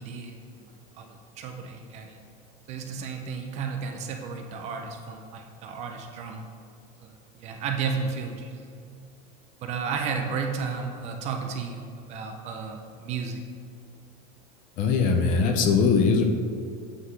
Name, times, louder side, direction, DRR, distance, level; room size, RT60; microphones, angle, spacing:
voice 1, 0.0-2.2 2.7-6.5 7.0-8.7 9.6-11.8 12.1-13.4, right 5 dB, 35° right, 4 dB, 0.4 m, -33 dB
voice 2, 14.8-16.2, left 5 dB, 40° left, 5 dB, 0.5 m, -21 dB
7.9 x 3.8 x 3.2 m, 2.3 s
supercardioid pair, 155°, 21 cm